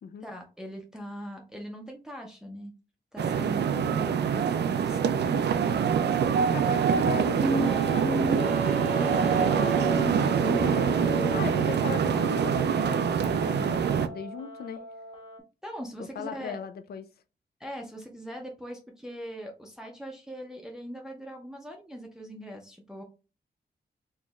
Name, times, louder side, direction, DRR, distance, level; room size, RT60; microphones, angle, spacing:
voice 1, 0.2-2.7 3.1-5.6 15.6-16.6 17.6-23.0, equal, 5° right, 0.6 m, -41 dB
sound 1, 3.2-14.1, right 7 dB, 75° right, 0.4 m, -25 dB
voice 2, 6.5-8.6 9.9-14.8 16.2-17.0, left 7 dB, 65° left, 0.4 m, -38 dB
sound 2, 7.4-15.4, equal, 35° left, 0.8 m, -35 dB
4.4 x 2.9 x 2.3 m
wide cardioid pair, 125°, 18 cm